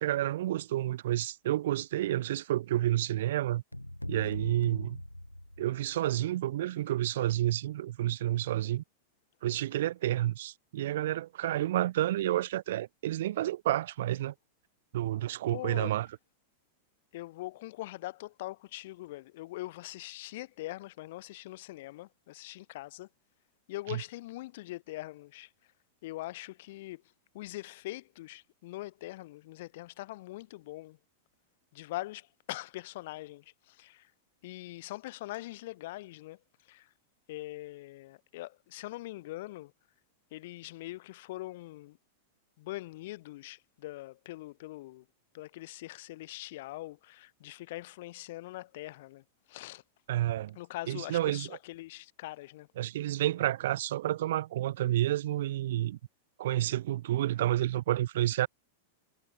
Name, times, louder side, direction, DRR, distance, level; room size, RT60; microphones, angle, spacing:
voice 1, 0.0-3.6 4.1-5.0 5.6-8.8 9.4-14.3 14.9-16.1 23.9-24.0 50.1-50.6 50.9-51.5 52.8-56.0 56.4-58.5, right 13 dB, 55° right, 0.5 m, -30 dB
sound 1, 3.7-6.0, left 1 dB, 90° left, 5.2 m, -40 dB
voice 2, 15.5-15.9 17.1-23.1 23.7-25.5 26.0-27.0 27.3-31.0 31.7-34.1 34.4-36.9 37.3-39.7 40.3-42.0 42.6-45.1 45.3-49.8 50.6-52.7, left 18 dB, 50° left, 6.9 m, -42 dB
figure-of-eight pair, 95°, 0 cm